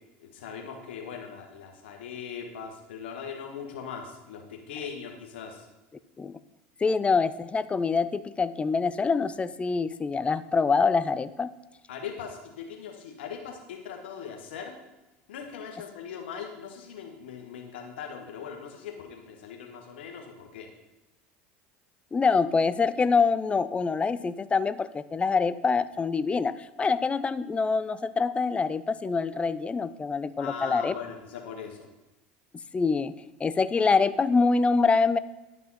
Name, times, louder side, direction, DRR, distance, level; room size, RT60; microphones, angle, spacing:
voice 1, 0.2-5.7 11.9-14.8 15.3-20.7 30.4-31.9, left 6 dB, 85° left, 2 dB, 1.5 m, -40 dB
voice 2, 6.8-11.5 22.1-30.9 32.7-33.1 33.4-35.2, left 4 dB, 20° left, 15 dB, 0.4 m, -25 dB
11.0 x 5.5 x 4.2 m, 1.0 s
hypercardioid pair, 95°, 6 cm